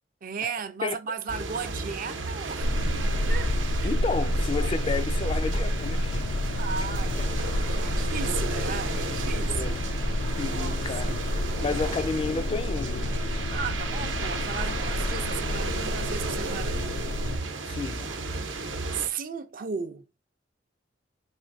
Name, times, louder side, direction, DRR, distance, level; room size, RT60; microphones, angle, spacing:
voice 1, 0.2-2.7 3.3-4.0 6.6-9.9 10.4-10.8 13.5-16.8 18.7-20.1, right 6 dB, 50° right, 0.5 m, -35 dB
sound 1, 1.3-19.1, right 3 dB, 85° right, 0.7 m, -34 dB
sound 2, 2.6-17.4, left 1 dB, 90° left, 0.5 m, -29 dB
voice 2, 3.8-6.3 7.2-7.3 9.5-9.8 10.4-13.1 17.7-18.2, left 4 dB, 30° left, 0.3 m, -31 dB
sound 3, 6.5-15.8, left 2 dB, 65° left, 0.9 m, -40 dB
4.2 x 2.6 x 2.6 m
head